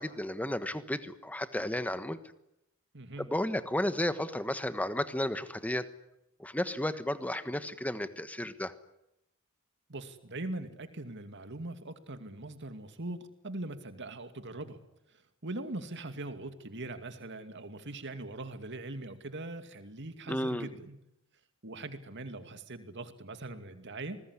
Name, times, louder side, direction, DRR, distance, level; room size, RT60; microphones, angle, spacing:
voice 1, 0.0-2.2 3.3-5.8 6.4-8.7 20.3-20.7, left 1 dB, 5° left, 11 dB, 1.3 m, -33 dB
voice 2, 2.9-3.3 9.9-14.8 15.1-21.0 21.6-24.2, right 2 dB, 55° right, 8 dB, 2.5 m, -41 dB
27.5 x 20.0 x 9.9 m, 0.86 s
head